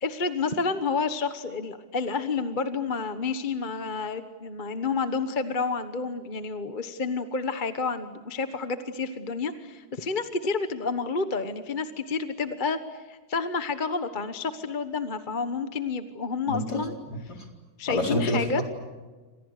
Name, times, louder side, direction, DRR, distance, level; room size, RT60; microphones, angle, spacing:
voice 1, 0.0-16.9 17.8-18.6, left 4 dB, 30° left, 9 dB, 1.3 m, -30 dB
voice 2, 16.5-16.8 17.1-17.5 17.9-18.6, left 1 dB, 60° left, 2 dB, 4.9 m, -28 dB
29.5 x 26.5 x 6.6 m, 1.3 s
omnidirectional pair, 1.9 m